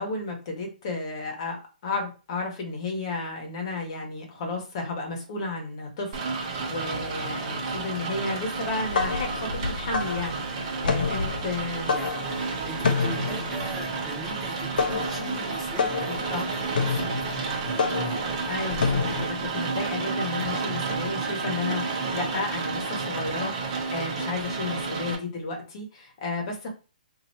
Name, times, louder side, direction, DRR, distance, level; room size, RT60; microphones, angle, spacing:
voice 1, 0.0-11.9 16.0-16.4 18.5-26.7, left 3 dB, 35° left, 2 dB, 1.3 m, -33 dB
Rain, 6.1-25.1, right 4 dB, 35° right, 1.2 m, -31 dB
sound 1, 8.7-19.4, left 5 dB, 70° left, 0.7 m, -29 dB
voice 2, 11.7-18.5, equal, ahead, -3 dB, 0.4 m, -42 dB
2.9 x 2.8 x 4.1 m, 0.33 s
hypercardioid pair, 165°, 5 cm